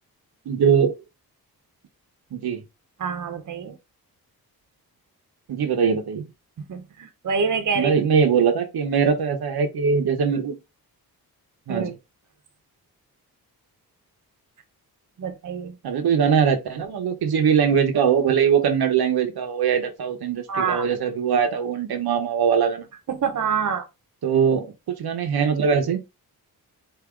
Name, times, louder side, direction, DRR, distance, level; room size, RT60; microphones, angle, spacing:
voice 1, 0.5-1.0 2.3-2.6 5.5-6.2 7.8-10.6 11.7-12.0 15.8-22.9 24.2-26.0, right 7 dB, 80° right, 1.0 m, -21 dB
voice 2, 3.0-3.8 6.7-7.9 11.7-11.9 15.2-15.8 20.5-20.8 23.1-23.9, right 6 dB, 50° right, 1.0 m, -26 dB
4.9 x 2.7 x 3.7 m
cardioid pair, 85°, 38 cm